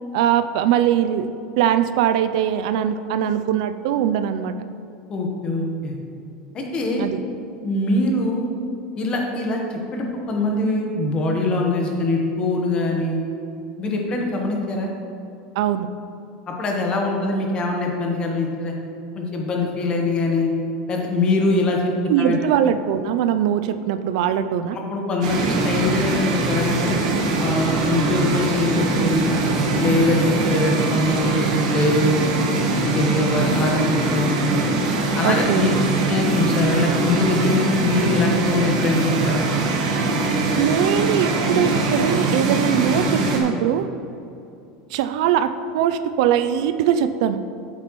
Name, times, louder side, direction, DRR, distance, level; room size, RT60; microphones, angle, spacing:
voice 1, 0.1-1.3 1.6-4.5 7.0-7.2 15.6-15.9 22.1-24.8 35.2-35.7 40.6-43.9 44.9-47.4, right 10 dB, 70° right, 11 dB, 0.4 m, -21 dB
voice 2, 5.1-5.9 6.5-7.0 7.6-8.4 9.0-13.2 13.8-14.9 16.5-18.7 19.1-20.5 20.9-21.9 22.2-22.4 24.7-27.0 27.4-29.4 29.8-32.2 32.8-34.6 35.2-35.7 36.1-39.4, left 2 dB, 30° left, 1 dB, 1.2 m, -22 dB
sound 1, 25.2-43.4, right 3 dB, 90° right, 1.3 m, -22 dB
8.5 x 8.0 x 3.1 m, 2.6 s
supercardioid pair, 145°, 3 cm